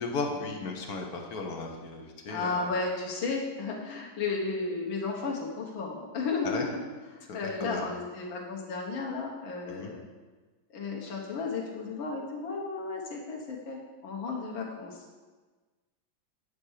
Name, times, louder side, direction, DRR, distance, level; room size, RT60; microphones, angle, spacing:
voice 1, 0.0-2.7 6.4-6.7 7.3-7.8 9.7-9.9, left 3 dB, 55° left, 1 dB, 1.4 m, -35 dB
voice 2, 2.3-6.7 7.1-10.0 10.7-15.1, left 4 dB, 90° left, -2 dB, 2.1 m, -34 dB
8.6 x 4.4 x 6.4 m, 1.3 s
omnidirectional pair, 2.1 m